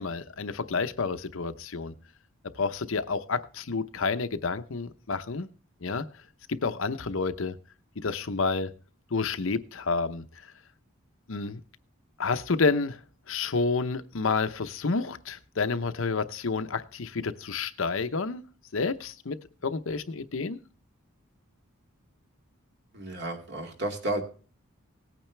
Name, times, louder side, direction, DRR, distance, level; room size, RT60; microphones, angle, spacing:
voice 1, 0.0-1.9 2.5-5.5 5.8-6.1 6.5-7.6 8.0-8.7 9.1-10.5 11.3-11.6 12.2-13.0 13.3-18.4 18.7-20.6, left 4 dB, 65° left, 0.7 m, -29 dB
voice 2, 22.9-24.2, right 2 dB, 50° right, 2.3 m, -32 dB
18.0 x 9.0 x 3.2 m
head